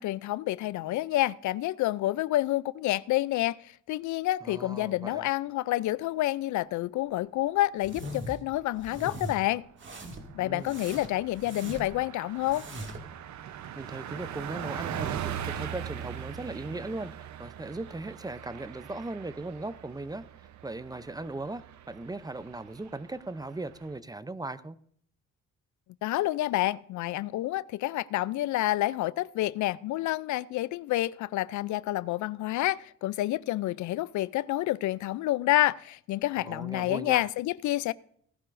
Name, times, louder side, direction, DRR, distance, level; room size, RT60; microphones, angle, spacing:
voice 1, 0.0-9.6 10.3-12.6 26.0-37.9, left 16 dB, 75° left, 0.4 m, -29 dB
voice 2, 4.4-5.3 10.4-10.8 13.8-20.3 20.6-24.8 36.4-37.3, right 2 dB, 15° right, 0.5 m, -38 dB
sound 1, 7.8-8.4 8.8-9.4 9.8-10.3 10.7-12.0 12.4-13.1, right 1 dB, 40° right, 2.1 m, -40 dB
Car passing by, 8.3-8.9 9.3-9.4 9.7-24.0, right 10 dB, 65° right, 0.8 m, -41 dB
17.5 x 11.5 x 2.6 m
cardioid pair, 90°, 30 cm